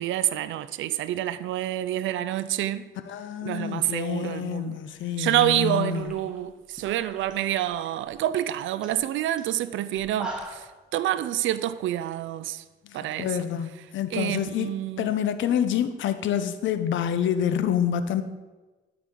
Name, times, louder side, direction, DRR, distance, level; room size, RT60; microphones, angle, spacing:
voice 1, 0.0-2.8 3.4-4.8 5.2-12.6 12.9-13.3 14.1-15.1, right 12 dB, 75° right, 0.4 m, -27 dB
voice 2, 3.1-6.1 12.9-18.2, left 9 dB, 75° left, 0.6 m, -27 dB
sound 1, 5.0-5.1 5.3-7.3 7.6-8.1 8.5-8.6 8.8-9.0 9.4-9.5 9.9-10.7, right 2 dB, 5° right, 1.6 m, -40 dB
11.5 x 4.8 x 3.8 m
cardioid pair, 90°, 20 cm